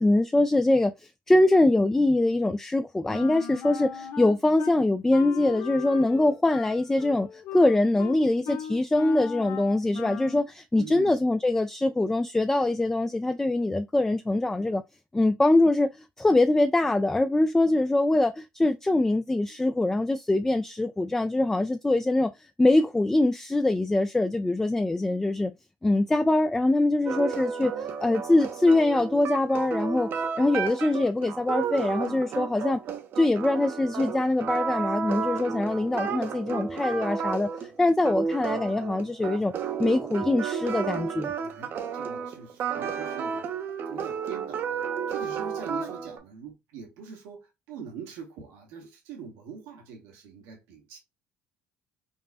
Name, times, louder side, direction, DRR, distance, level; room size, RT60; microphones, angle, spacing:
voice 1, 0.0-14.8 15.1-22.3 22.6-25.5 25.8-30.1 30.4-32.8 33.2-39.5 39.8-41.3, left 2 dB, 10° left, 0.3 m, -23 dB
Wind instrument woodwind instrument, 3.1-4.8 5.1-10.4, left 7 dB, 65° left, 0.8 m, -38 dB
voice 2, 10.8-11.2 41.4-43.5 43.9-44.8 45.1-51.0, right 7 dB, 75° right, 1.1 m, -43 dB
sound 1, 27.1-46.2, right 6 dB, 55° right, 0.7 m, -32 dB
5.3 x 2.0 x 2.5 m
supercardioid pair, 80°, 5 cm